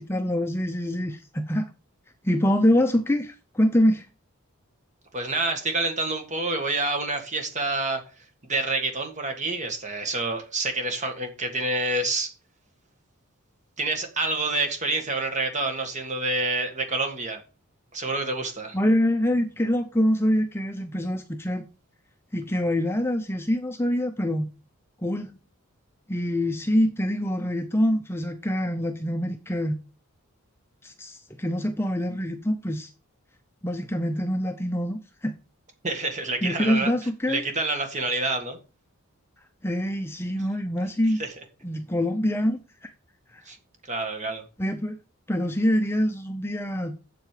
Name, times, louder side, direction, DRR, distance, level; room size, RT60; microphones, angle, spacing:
voice 1, 0.0-1.7 2.2-4.1 18.7-21.7 22.3-24.5 25.0-25.3 26.1-29.8 30.8-32.9 33.6-35.3 36.4-37.4 39.6-41.2 41.6-42.9 43.3-43.4 44.6-45.0 45.3-47.0, equal, 10° left, 0.6 m, -25 dB
voice 2, 5.1-8.0 8.5-12.3 13.8-17.4 17.9-18.8 35.8-36.9 37.3-38.6 41.2-41.3 43.5-43.6 43.9-44.4, right 2 dB, 35° right, 1.8 m, -27 dB
7.7 x 7.6 x 5.0 m
head